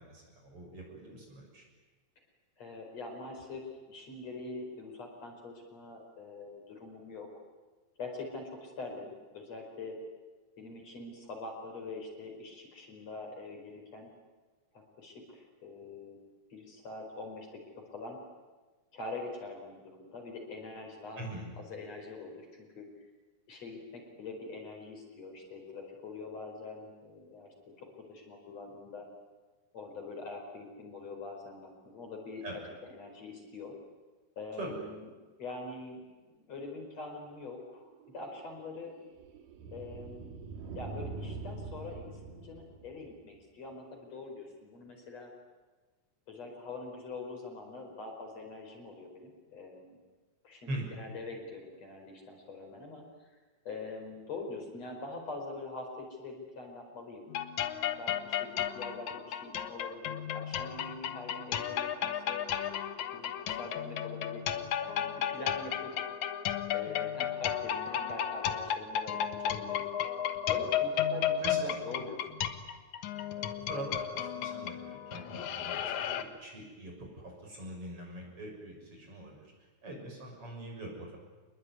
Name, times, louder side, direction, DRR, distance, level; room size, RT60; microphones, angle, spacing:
voice 1, 0.0-1.6 21.2-21.5 32.4-32.6 34.6-34.7 50.7-50.9 71.4-71.6 73.3-79.5 79.8-81.2, right 1 dB, 45° right, 1 dB, 7.5 m, -43 dB
voice 2, 2.6-7.3 8.0-10.0 10.6-14.1 14.7-16.2 16.5-18.2 18.9-21.2 21.6-23.1 23.5-29.1 29.7-32.6 32.9-33.8 34.4-35.1 35.4-36.0 36.5-38.9 39.7-40.5 40.8-45.3 46.3-50.0 50.4-53.4 53.7-57.3 58.0-62.4 63.1-65.9 66.7-69.8 70.5-72.4, left 3 dB, 55° left, 2 dB, 5.9 m, -44 dB
sound 1, 37.8-43.4, right 3 dB, 85° right, 3.5 m, -44 dB
sound 2, 57.3-76.2, left 9 dB, 70° left, 2.6 m, -33 dB
27.5 x 21.5 x 9.6 m, 1.3 s
omnidirectional pair, 3.7 m